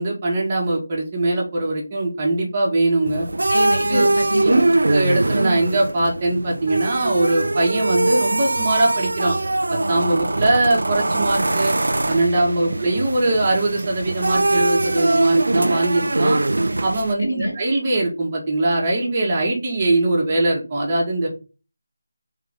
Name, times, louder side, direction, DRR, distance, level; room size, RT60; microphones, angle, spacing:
voice 1, 0.0-3.3 3.9-4.1 4.4-9.4 9.7-11.7 12.1-16.4 16.8-21.3, right 2 dB, 25° right, -2 dB, 1.4 m, -21 dB
sound 1, 3.1-17.1, right 2 dB, 80° right, 0.4 m, -22 dB
voice 2, 3.5-4.7 12.7-12.8 17.3-17.5, left 1 dB, 70° left, 2 dB, 1.9 m, -27 dB
3.8 x 3.7 x 3.6 m, 0.32 s
figure-of-eight pair, 170°, 0 cm